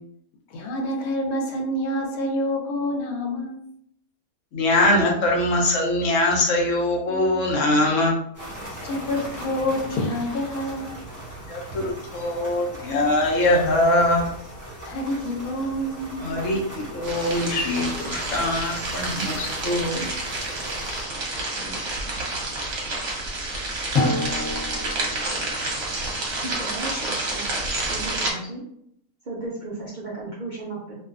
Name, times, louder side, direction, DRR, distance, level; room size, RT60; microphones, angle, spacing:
voice 1, 0.5-3.6 8.8-10.9 14.8-16.4 21.5-22.2, left 1 dB, 85° left, 1 dB, 1.1 m, -28 dB
voice 2, 4.5-8.2 11.5-14.3 16.2-20.1 20.9-21.1, left 1 dB, 65° left, -1 dB, 0.9 m, -22 dB
sound 1, 8.3-21.0, right 1 dB, 15° left, 1.0 m, -38 dB
sound 2, 17.0-28.3, right 2 dB, 55° right, 0.9 m, -29 dB
Drum, 23.9-26.2, left 2 dB, 50° left, 0.3 m, -27 dB
voice 3, 26.4-27.6 27.8-28.6 29.3-31.0, right 2 dB, 85° right, -5 dB, 0.4 m, -35 dB
2.5 x 2.3 x 2.4 m, 0.71 s
omnidirectional pair, 1.5 m